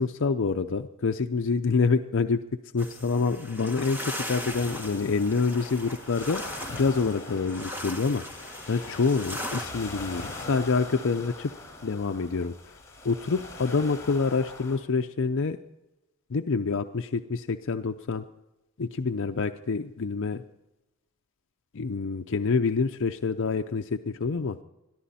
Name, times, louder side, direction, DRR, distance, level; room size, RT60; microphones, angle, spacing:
voice 1, 0.0-2.4 2.7-6.4 6.7-11.5 11.8-12.8 13.0-15.6 16.3-18.2 18.8-20.4 21.7-24.6, left 4 dB, 60° left, 7 dB, 0.5 m, -27 dB
sound 1, 2.8-10.4, left 1 dB, 10° right, 1.6 m, -39 dB
sound 2, 4.4-14.8, left 2 dB, 15° left, 3.9 m, -42 dB
21.5 x 13.5 x 4.2 m, 0.98 s
head